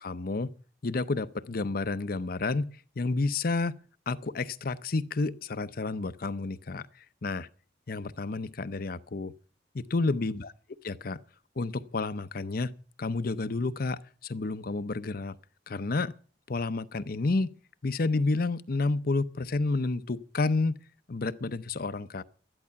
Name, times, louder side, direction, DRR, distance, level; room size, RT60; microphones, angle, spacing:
voice 1, 0.0-0.5 0.8-3.8 4.1-7.5 7.9-9.3 9.7-10.5 10.8-11.2 11.6-15.4 15.7-16.1 16.5-20.8 21.1-22.2, left 3 dB, 55° left, 0.7 m, -30 dB
13.0 x 11.0 x 5.8 m
head